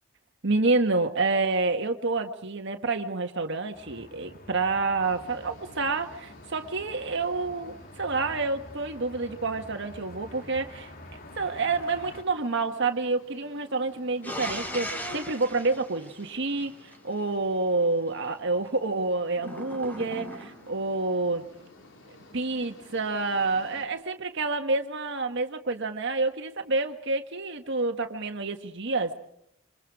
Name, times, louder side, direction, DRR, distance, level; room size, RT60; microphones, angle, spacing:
voice 1, 0.4-10.9 11.4-21.5 22.3-29.1, right 3 dB, 65° right, 1.6 m, -28 dB
sound 1, 3.7-12.2, left 1 dB, 50° left, 2.9 m, -48 dB
sound 2, 5.0-23.8, left 2 dB, 70° left, 4.9 m, -54 dB
sound 3, 14.2-17.0 19.4-20.8, equal, 10° left, 4.7 m, -37 dB
28.0 x 25.5 x 4.9 m
head